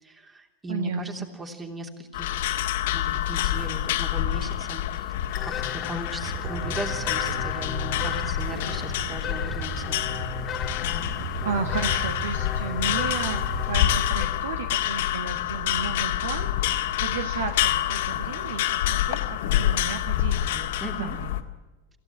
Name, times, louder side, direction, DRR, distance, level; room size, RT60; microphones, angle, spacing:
voice 1, 0.0-2.5 2.9-10.0 20.8-21.2, right 2 dB, 15° right, 5 dB, 3.0 m, -38 dB
voice 2, 0.7-1.3 11.3-21.3, right 5 dB, 60° right, 7 dB, 1.5 m, -33 dB
sound 1, 2.1-21.4, left 12 dB, 55° left, 1.8 m, -27 dB
sound 2, 5.3-14.2, left 8 dB, 30° left, 1.8 m, -36 dB
sound 3, 6.2-14.2, right 6 dB, 40° right, 2.5 m, -37 dB
26.5 x 15.5 x 7.3 m, 1.2 s
figure-of-eight pair, 90°, 0 cm